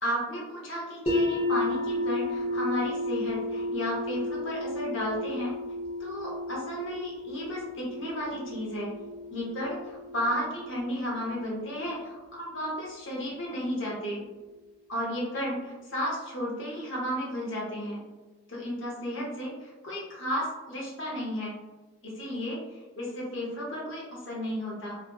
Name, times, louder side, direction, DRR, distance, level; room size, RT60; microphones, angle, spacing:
voice 1, 0.0-5.6 6.0-8.9 9.3-14.2 14.9-18.0 18.5-21.5 22.0-25.0, equal, 65° left, -4 dB, 0.8 m, -33 dB
sound 1, 1.1-13.0, left 2 dB, 30° left, 0.5 m, -33 dB
2.4 x 2.4 x 2.3 m, 1.2 s
head